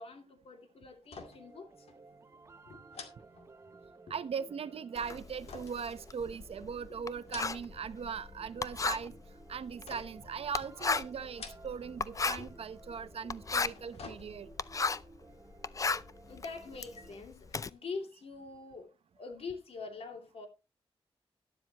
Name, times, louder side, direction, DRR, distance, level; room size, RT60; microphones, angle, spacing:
voice 1, 0.0-1.9 2.7-2.8 3.7-3.8 4.1-4.2 12.4-12.5 16.2-18.9 19.1-20.5, left 4 dB, 70° left, 2.7 m, -44 dB
sound 1, 1.0-1.6 1.9-2.0 2.9-4.0 5.5-6.6 7.1-7.9 8.2-8.8 9.9-10.4 11.2-12.0 12.3-12.4 13.5-14.7 15.1-15.2, left 4 dB, 90° left, 2.2 m, -49 dB
sound 2, 1.2-17.2, right 3 dB, 30° right, 0.9 m, -57 dB
voice 2, 4.1-9.1 9.5-14.5, right 6 dB, 75° right, 0.9 m, -39 dB
Writing, 5.0-15.2 15.5-17.7, left 4 dB, 35° left, 0.5 m, -35 dB
12.0 x 12.0 x 3.0 m
wide cardioid pair, 115°, 10 cm